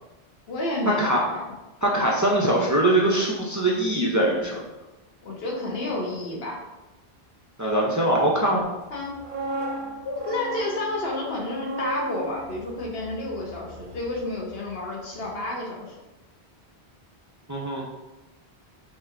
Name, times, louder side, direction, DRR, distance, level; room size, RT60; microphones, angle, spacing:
voice 1, 0.5-1.4 5.2-6.6 8.9-9.1 10.0-16.0, left 2 dB, 70° left, -2 dB, 1.2 m, -30 dB
voice 2, 1.8-4.6 7.6-8.7 17.5-17.8, right 1 dB, 30° right, -3 dB, 0.3 m, -22 dB
sound 1, 9.0-14.9 15.2-15.4, right 2 dB, 60° right, 0.7 m, -36 dB
5.4 x 2.8 x 2.5 m, 1.0 s
omnidirectional pair, 1.1 m